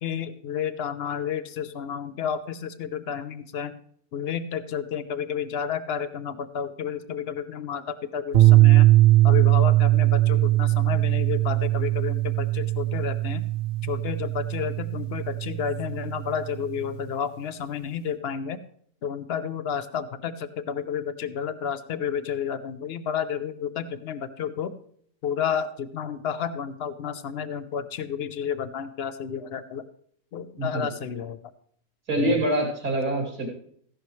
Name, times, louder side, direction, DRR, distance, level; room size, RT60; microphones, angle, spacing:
voice 1, 0.0-3.7 4.1-8.9 9.2-13.4 13.8-18.6 19.0-24.7 25.2-29.8 30.3-31.5 32.2-32.5, left 7 dB, 60° left, 13 dB, 0.6 m, -31 dB
sound 1, 8.3-16.7, right 17 dB, 50° right, 0.8 m, -20 dB
voice 2, 32.1-33.5, right 1 dB, 90° right, 0 dB, 3.4 m, -25 dB
14.5 x 11.0 x 3.2 m, 0.63 s
omnidirectional pair, 1.6 m